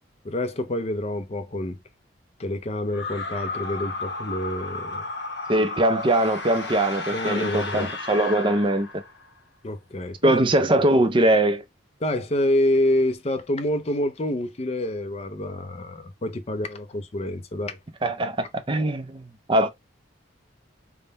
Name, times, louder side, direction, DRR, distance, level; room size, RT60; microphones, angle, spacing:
voice 1, 0.2-1.8 2.4-5.1 7.1-7.9 9.6-10.3 12.0-17.8, left 1 dB, 35° left, 0.5 m, -27 dB
sound 1, 2.9-9.3, left 3 dB, 65° left, 1.1 m, -33 dB
voice 2, 5.5-8.9 10.2-11.6 18.0-19.7, right 1 dB, 25° right, 0.5 m, -21 dB
3.6 x 2.1 x 4.0 m
head